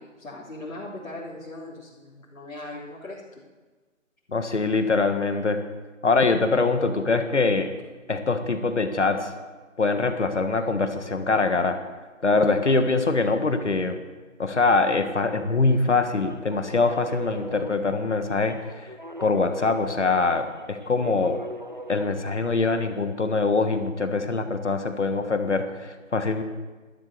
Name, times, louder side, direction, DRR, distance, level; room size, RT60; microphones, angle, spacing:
voice 1, 0.0-3.4, left 2 dB, 85° left, -6 dB, 3.5 m, -39 dB
voice 2, 4.3-5.6 6.0-7.7 8.1-9.3 9.8-11.8 12.2-14.0 14.4-18.9 19.2-21.4 21.9-26.4, left 3 dB, 60° left, 8 dB, 1.5 m, -23 dB
sound 1, 16.2-23.0, right 1 dB, 35° right, 0.6 m, -41 dB
12.5 x 11.0 x 6.7 m, 1.3 s
figure-of-eight pair, 180°, 40 cm